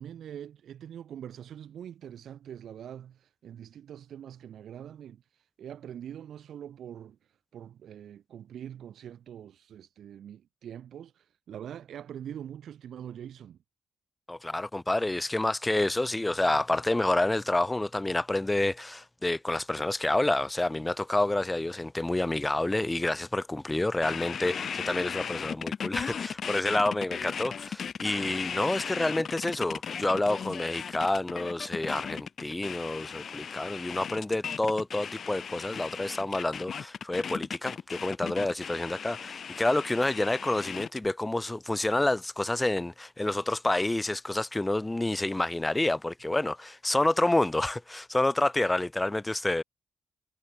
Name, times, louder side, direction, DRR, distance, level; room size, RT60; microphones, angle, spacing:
voice 1, 0.0-13.6, right 9 dB, 80° right, 1.5 m, -44 dB
voice 2, 14.3-49.6, left 2 dB, 15° left, 2.5 m, -28 dB
sound 1, 24.0-41.1, left 7 dB, 60° left, 1.0 m, -37 dB
cardioid pair, 70°, 0 cm